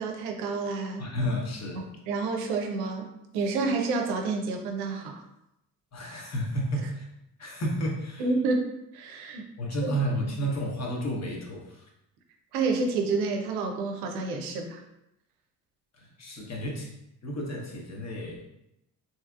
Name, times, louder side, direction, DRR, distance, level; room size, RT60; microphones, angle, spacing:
voice 1, 0.0-1.0 2.1-5.2 8.2-9.5 9.8-9.9 12.5-14.8, right 3 dB, 85° right, 3 dB, 0.6 m, -29 dB
voice 2, 1.0-1.9 5.9-7.0 7.4-8.3 9.6-11.9 16.0-16.9 17.2-18.4, equal, 35° left, -1 dB, 1.1 m, -31 dB
3.3 x 2.9 x 2.4 m, 0.84 s
hypercardioid pair, 50°, 44 cm